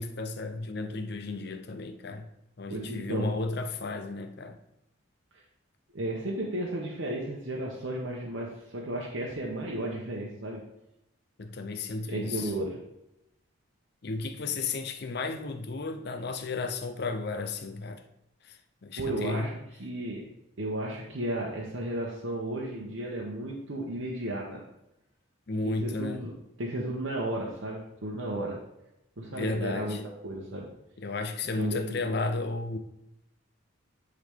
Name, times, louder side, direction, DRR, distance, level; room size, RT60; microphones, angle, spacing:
voice 1, 0.0-2.3 2.6-4.6 11.4-12.5 14.0-18.0 18.4-19.5 25.5-26.3 29.3-30.0 31.0-32.8, left 3 dB, 50° left, 0.6 m, -33 dB
voice 2, 2.7-3.3 5.9-10.6 12.1-12.8 19.0-20.3 20.6-24.6 25.6-26.3 26.6-28.6 29.2-30.0 30.2-30.7 31.6-32.1, right 1 dB, 65° right, 0.9 m, -34 dB
10.0 x 3.9 x 3.6 m
head